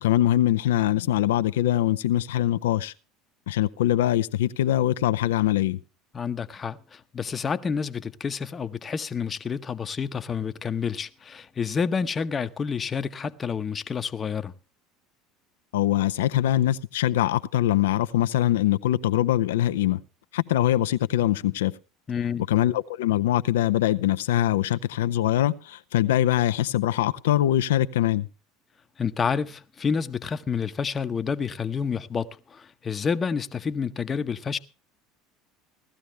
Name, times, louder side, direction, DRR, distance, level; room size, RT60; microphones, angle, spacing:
voice 1, 0.0-2.9 3.5-5.8 15.7-20.0 20.3-21.7 22.5-28.3, left 13 dB, 85° left, 0.6 m, -23 dB
voice 2, 6.1-14.5 22.1-22.5 29.0-34.6, left 6 dB, 30° left, 0.9 m, -29 dB
17.0 x 12.5 x 3.3 m
hypercardioid pair, 85°, 0 cm